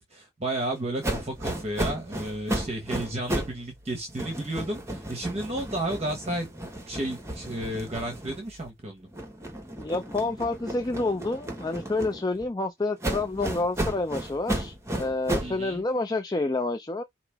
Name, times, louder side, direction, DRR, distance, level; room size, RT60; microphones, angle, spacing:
voice 1, 0.0-6.5 6.9-9.1 15.4-15.8, right 1 dB, 30° right, 1.1 m, -32 dB
sound 1, 1.0-3.6 3.9-8.7 9.1-12.5 13.0-15.6, right 1 dB, 15° right, 1.3 m, -33 dB
voice 2, 9.8-17.0, left 2 dB, 20° left, 0.5 m, -28 dB
5.0 x 2.9 x 3.4 m
head